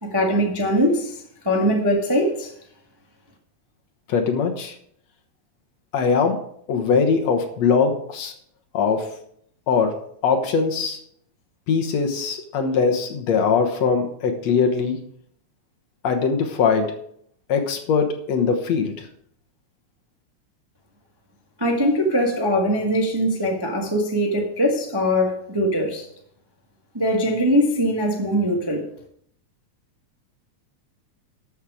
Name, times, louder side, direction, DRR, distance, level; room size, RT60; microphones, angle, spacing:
voice 1, 0.0-2.5 21.6-26.0 26.9-28.8, equal, 15° right, 0 dB, 0.9 m, -21 dB
voice 2, 4.1-4.8 5.9-6.4 6.7-8.3 8.7-9.1 9.7-11.0 11.7-15.0 16.0-16.9 17.5-19.1, left 5 dB, 65° left, 5 dB, 2.3 m, -21 dB
13.0 x 7.4 x 4.9 m, 0.67 s
omnidirectional pair, 3.5 m